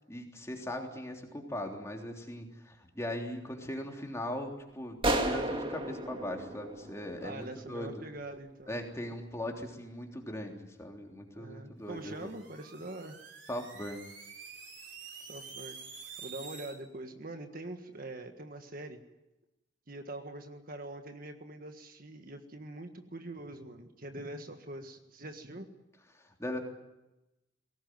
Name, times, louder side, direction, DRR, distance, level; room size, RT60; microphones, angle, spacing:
voice 1, 0.1-8.0 8.7-12.3 13.5-14.0 26.1-26.6, left 1 dB, 15° left, 1 dB, 3.3 m, -39 dB
sound 1, 5.0-7.6, right 1 dB, 25° right, 2.3 m, -33 dB
voice 2, 7.2-8.8 11.3-13.2 15.3-15.8 16.2-19.0 19.9-25.7, right 2 dB, 45° right, 6 dB, 1.7 m, -44 dB
sound 2, 11.9-16.7, right 5 dB, 65° right, 4.8 m, -48 dB
21.5 x 18.0 x 9.4 m, 0.97 s
head